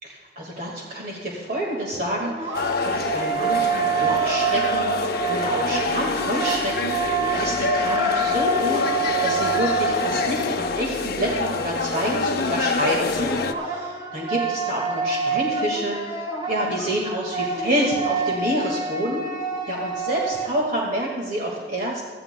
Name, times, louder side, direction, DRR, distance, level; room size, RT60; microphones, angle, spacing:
voice 1, 0.0-7.0 7.3-16.2 16.5-19.2 19.7-22.0, right 1 dB, 55° right, -2 dB, 1.8 m, -28 dB
sound 1, 1.9-10.6 13.0-20.7, right 4 dB, 25° right, 1.3 m, -27 dB
sound 2, 2.5-13.5, left 3 dB, 60° left, 0.7 m, -26 dB
22.5 x 14.5 x 2.2 m, 1.4 s
head